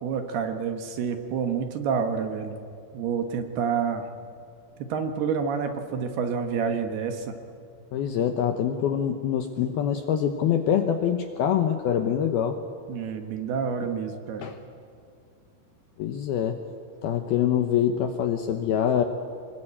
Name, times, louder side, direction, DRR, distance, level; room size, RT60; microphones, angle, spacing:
voice 1, 0.0-2.5 2.9-4.0 4.8-7.3 12.9-14.5, right 6 dB, 65° right, 6 dB, 2.8 m, -28 dB
voice 2, 7.9-12.6 13.8-13.9 14.4-14.6 16.0-16.6 17.0-19.0, left 9 dB, 75° left, 6 dB, 2.3 m, -25 dB
25.5 x 21.5 x 8.8 m, 2.4 s
omnidirectional pair, 5.6 m